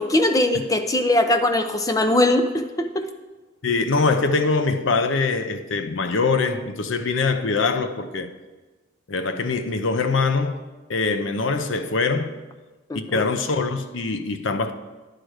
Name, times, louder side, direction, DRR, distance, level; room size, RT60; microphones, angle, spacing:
voice 1, 0.0-3.1 12.9-13.2, left 1 dB, 15° left, 0.5 m, -21 dB
voice 2, 3.6-8.3 9.1-12.4 12.9-14.7, left 4 dB, 75° left, 0.6 m, -23 dB
10.0 x 4.9 x 6.2 m
head